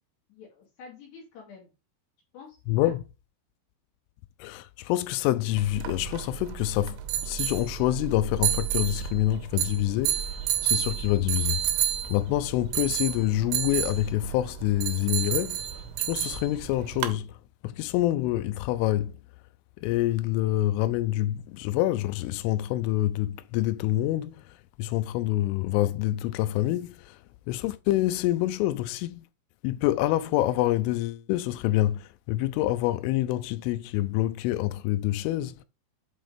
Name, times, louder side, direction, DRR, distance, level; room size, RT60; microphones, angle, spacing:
voice 1, 0.3-1.7 2.3-2.9, left 5 dB, 65° left, 3.8 m, -48 dB
voice 2, 2.7-3.0 4.4-7.0 7.3-10.2 10.6-11.6 12.1-15.6 16.1-17.3 17.6-19.1 19.8-24.3 24.8-26.9 27.5-29.2 29.6-32.0 32.3-35.5, left 15 dB, 90° left, 3.1 m, -26 dB
sound 1, 5.6-17.2, right 12 dB, 90° right, 3.3 m, -31 dB
8.1 x 3.1 x 5.0 m
omnidirectional pair, 5.5 m